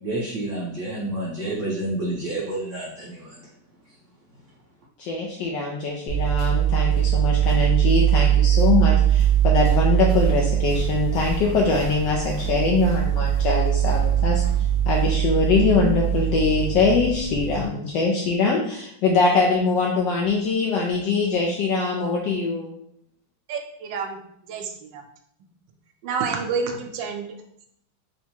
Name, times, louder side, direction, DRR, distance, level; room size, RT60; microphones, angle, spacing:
voice 1, 0.0-3.4, right 1 dB, 45° right, -6 dB, 1.1 m, -29 dB
voice 2, 5.0-14.4 14.9-22.7, left 4 dB, 75° left, -1 dB, 1.2 m, -22 dB
sound 1, 6.1-17.7, right 10 dB, 5° left, 0.9 m, -21 dB
voice 3, 23.5-25.0 26.0-27.4, right 5 dB, 75° right, 4 dB, 1.1 m, -29 dB
3.3 x 2.9 x 4.3 m, 0.70 s
omnidirectional pair, 2.2 m